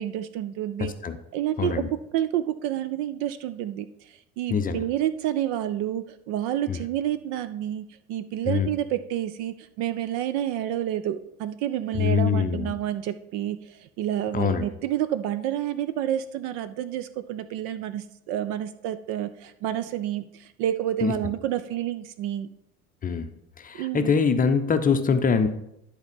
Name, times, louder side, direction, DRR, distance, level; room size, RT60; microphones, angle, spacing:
voice 1, 0.0-0.9 1.3-1.7 2.1-22.5 23.7-24.1, right 11 dB, 45° right, 13 dB, 0.5 m, -29 dB
voice 2, 0.8-1.2 1.6-1.9 4.5-4.8 6.7-6.8 8.5-8.7 11.9-12.7 14.3-14.6 21.0-21.1 23.0-23.3 23.6-25.5, left 6 dB, 20° left, 8 dB, 0.7 m, -23 dB
10.5 x 4.3 x 5.2 m, 0.81 s
figure-of-eight pair, 70°, 43 cm